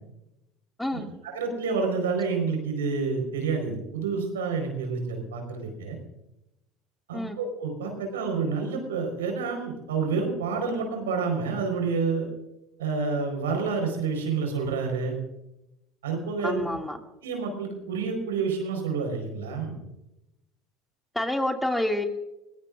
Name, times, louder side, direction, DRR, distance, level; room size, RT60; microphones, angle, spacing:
voice 1, 0.9-6.0 7.1-12.3 12.8-15.2 16.0-16.7 17.2-19.8, right 5 dB, 90° right, 4 dB, 4.7 m, -29 dB
voice 2, 16.4-17.0 21.1-22.0, left 1 dB, 10° left, 4 dB, 2.4 m, -28 dB
21.5 x 17.5 x 2.5 m, 0.89 s
hypercardioid pair, 75°, 0 cm